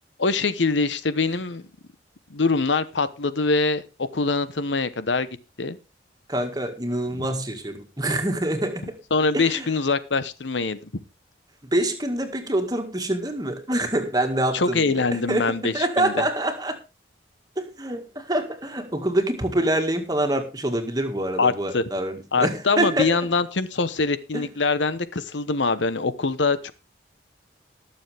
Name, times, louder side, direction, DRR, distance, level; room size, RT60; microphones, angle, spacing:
voice 1, 0.2-1.6 2.3-3.8 4.1-5.3 5.6-5.8 9.1-10.8 14.5-16.1 21.4-21.8 22.3-26.7, left 3 dB, 85° left, 14 dB, 1.0 m, -23 dB
voice 2, 6.3-9.0 9.3-9.7 11.7-16.8 17.6-23.3 24.3-24.5, right 1 dB, 20° right, 6 dB, 1.9 m, -26 dB
20.0 x 7.1 x 3.4 m, 0.29 s
head